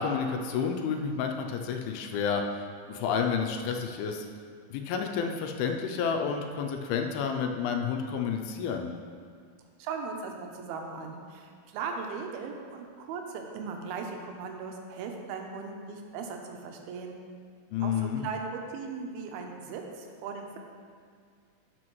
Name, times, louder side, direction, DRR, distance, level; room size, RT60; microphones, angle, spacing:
voice 1, 0.0-2.4 2.9-4.3 4.7-8.9 17.7-18.2, left 6 dB, 85° left, 4 dB, 2.5 m, -30 dB
voice 2, 9.8-17.2 17.8-20.6, right 5 dB, 80° right, 3 dB, 2.6 m, -38 dB
12.5 x 5.8 x 3.1 m, 2.1 s
omnidirectional pair, 4.4 m